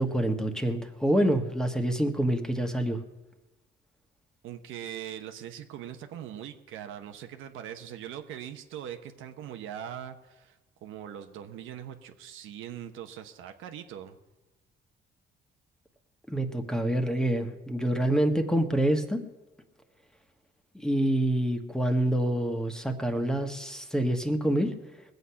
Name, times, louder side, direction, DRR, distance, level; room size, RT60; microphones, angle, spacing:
voice 1, 0.0-3.0 16.3-19.2 20.7-24.7, right 1 dB, 5° left, 5 dB, 1.4 m, -26 dB
voice 2, 4.4-14.2, right 10 dB, 90° right, 6 dB, 1.0 m, -41 dB
20.0 x 8.1 x 5.7 m, 1.1 s
cardioid pair, 90°, 20 cm